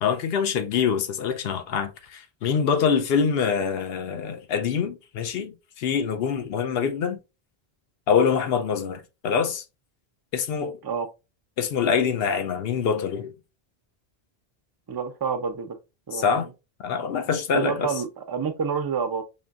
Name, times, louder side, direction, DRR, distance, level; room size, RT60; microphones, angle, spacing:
voice 1, 0.0-7.2 8.1-9.6 10.3-10.8 11.6-13.3 16.1-16.5 16.8-17.9, left 6 dB, 75° left, 0.8 m, -25 dB
voice 2, 14.9-15.8 16.1-16.5 17.5-19.2, right 6 dB, 35° right, 0.3 m, -28 dB
5.4 x 2.6 x 2.4 m
omnidirectional pair, 1.0 m